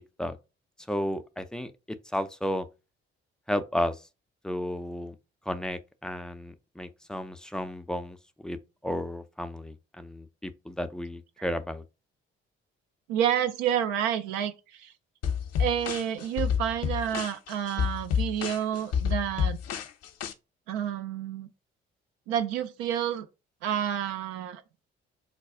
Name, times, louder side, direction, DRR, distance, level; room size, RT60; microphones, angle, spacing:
voice 1, 0.9-1.7 2.1-2.7 3.5-4.0 4.4-5.1 5.5-8.2 8.4-8.6 8.8-11.8, left 1 dB, ahead, 0.4 m, -33 dB
voice 2, 13.1-14.9 15.6-19.6 20.7-21.5 22.3-23.3 23.6-24.8, right 10 dB, 65° right, 0.5 m, -29 dB
sound 1, 15.2-20.3, left 7 dB, 50° left, 0.6 m, -29 dB
4.0 x 2.3 x 3.7 m
figure-of-eight pair, 40°, 32 cm